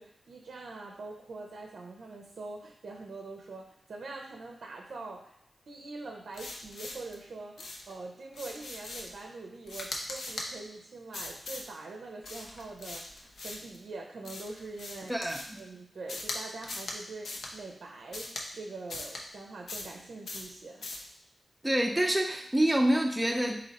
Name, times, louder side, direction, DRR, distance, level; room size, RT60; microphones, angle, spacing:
voice 1, 0.0-5.4 5.7-20.9, right 3 dB, 70° right, 2 dB, 0.5 m, -44 dB
sound 1, 6.3-7.2 7.6-7.9 8.3-9.2 9.7-10.5 11.1-11.7 12.2-13.8 14.2-15.6 16.1-16.4 16.6-17.0 17.2-17.5 18.1-18.5 18.9-19.2 19.7-20.0 20.3-20.5 20.8-21.1, left 2 dB, 75° left, 0.7 m, -40 dB
voice 2, 21.6-23.6, right 1 dB, 5° right, 2 dB, 0.5 m, -26 dB
4.1 x 2.8 x 4.0 m, 0.78 s
wide cardioid pair, 110°, 0 cm